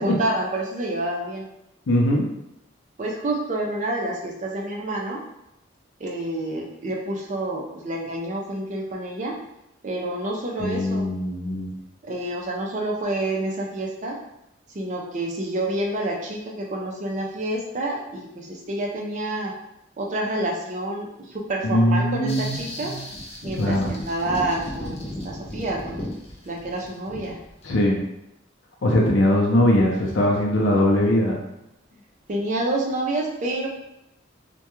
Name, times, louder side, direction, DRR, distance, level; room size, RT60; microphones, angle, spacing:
voice 1, 0.0-1.4 3.0-5.2 6.0-9.4 9.8-11.1 12.0-14.2 14.7-19.5 20.0-22.9 23.4-26.1 26.5-27.4 32.3-33.7, right 1 dB, 40° right, -1 dB, 0.4 m, -28 dB
voice 2, 1.9-2.2 10.6-11.8 21.6-23.0 23.6-23.9 27.6-28.0 28.8-31.4, left 1 dB, 85° left, -2 dB, 0.5 m, -21 dB
sound 1, 22.3-27.6, left 1 dB, 30° left, 0.4 m, -35 dB
2.3 x 2.2 x 2.9 m, 0.86 s
head